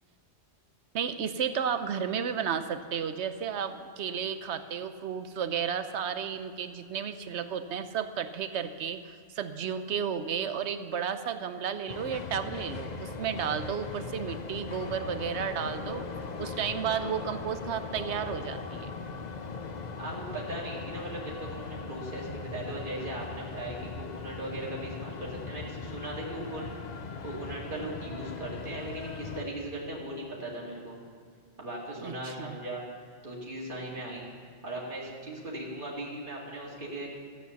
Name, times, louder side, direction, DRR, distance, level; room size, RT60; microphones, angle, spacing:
voice 1, 0.9-16.0 16.4-18.9 32.0-32.6, right 7 dB, 85° right, 10 dB, 1.0 m, -33 dB
sound 1, 11.9-29.4, left 4 dB, 45° left, 0.8 m, -39 dB
voice 2, 20.0-26.7 27.2-31.0 31.6-32.8 33.2-34.3 34.6-37.1, right 1 dB, 50° right, -4 dB, 2.4 m, -38 dB
14.0 x 8.7 x 6.9 m, 2.1 s
omnidirectional pair, 1.1 m